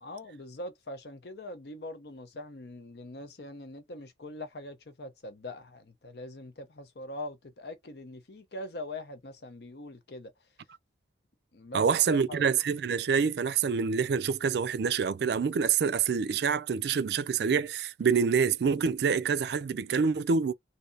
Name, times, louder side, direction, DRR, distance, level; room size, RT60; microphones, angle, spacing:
voice 1, 0.0-10.3 11.5-12.4, left 1 dB, 60° left, 0.7 m, -42 dB
voice 2, 11.7-20.5, right 6 dB, 60° right, 0.3 m, -26 dB
3.2 x 2.7 x 2.6 m
head